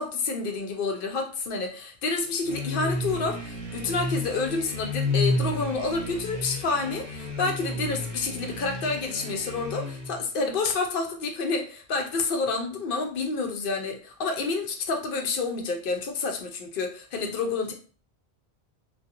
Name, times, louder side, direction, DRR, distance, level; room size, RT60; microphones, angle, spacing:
voice 1, 0.0-17.7, left 3 dB, 65° left, 3 dB, 0.7 m, -29 dB
sound 1, 2.4-10.3, left 2 dB, 35° right, 0.8 m, -31 dB
2.4 x 2.2 x 2.8 m, 0.41 s
omnidirectional pair, 1.1 m